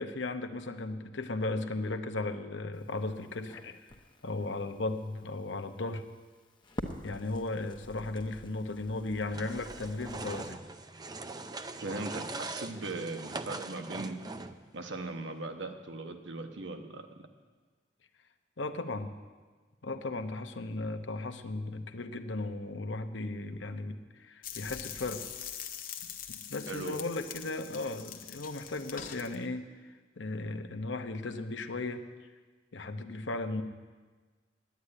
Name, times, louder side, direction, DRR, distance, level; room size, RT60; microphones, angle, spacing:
voice 1, 0.0-3.8 4.2-6.0 7.0-10.6 18.6-19.1 19.8-25.3 26.3-29.6 30.2-32.0 32.7-33.6, left 2 dB, 80° left, 7 dB, 0.9 m, -36 dB
Crackle, 2.7-10.5, left 1 dB, 25° left, 1.0 m, -48 dB
sound 1, 9.3-14.7, right 3 dB, 20° right, 0.5 m, -41 dB
voice 2, 11.8-14.2 14.7-17.1 26.7-27.0, right 2 dB, 80° right, 5 dB, 1.2 m, -39 dB
sound 2, 24.4-29.4, left 9 dB, 50° left, 0.9 m, -43 dB
10.0 x 9.5 x 9.7 m, 1.4 s
head